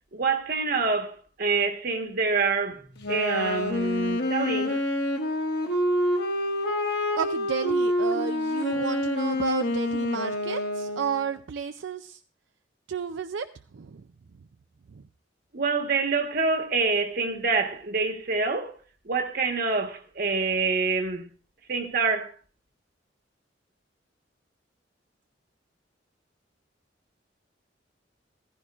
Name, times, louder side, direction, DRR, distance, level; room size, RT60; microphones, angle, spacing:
voice 1, 0.1-2.8 3.1-4.8 15.5-18.8 19.0-21.3 21.7-22.3, right 4 dB, 55° right, 1.4 m, -26 dB
Wind instrument woodwind instrument, 3.0-11.3, left 1 dB, 65° left, 1.7 m, -27 dB
voice 2, 7.2-12.2 12.9-13.5 13.7-14.0, right 6 dB, 85° right, 0.5 m, -31 dB
15.0 x 14.5 x 2.5 m
head